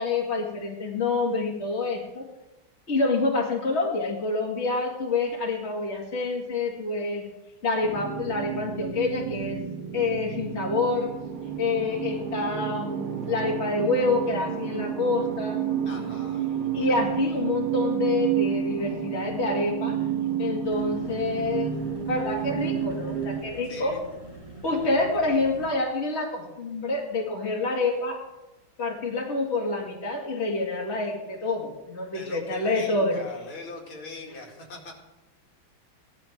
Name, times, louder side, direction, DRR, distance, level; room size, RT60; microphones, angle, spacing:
voice 1, 0.0-2.3 2.9-7.3 7.6-9.6 9.9-11.1 11.6-15.6 16.7-20.0 20.4-21.7 22.1-24.0 24.6-28.2 28.8-33.2, left 3 dB, 30° left, -2 dB, 2.4 m, -27 dB
sound 1, 7.8-23.4, right 8 dB, 80° right, 2.3 m, -30 dB
voice 2, 15.8-16.5 23.6-24.0 32.1-34.9, left 2 dB, 75° left, -1 dB, 3.2 m, -41 dB
sound 2, 20.6-25.7, right 2 dB, 15° left, 2.3 m, -44 dB
17.0 x 11.5 x 3.7 m, 0.98 s
omnidirectional pair, 2.3 m